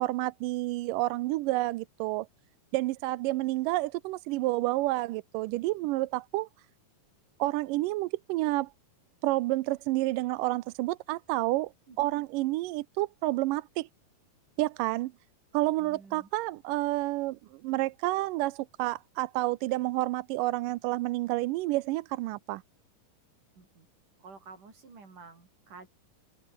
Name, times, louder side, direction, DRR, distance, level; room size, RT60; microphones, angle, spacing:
voice 1, 0.0-2.3 2.7-6.5 7.4-8.7 9.2-11.7 12.0-13.9 14.6-15.1 15.5-22.6, right 19 dB, 80° right, 2.2 m, -29 dB
voice 2, 11.9-12.2 15.8-16.3 23.6-23.9 24.2-25.9, right 4 dB, 60° right, 7.5 m, -51 dB
open air
omnidirectional pair, 4.1 m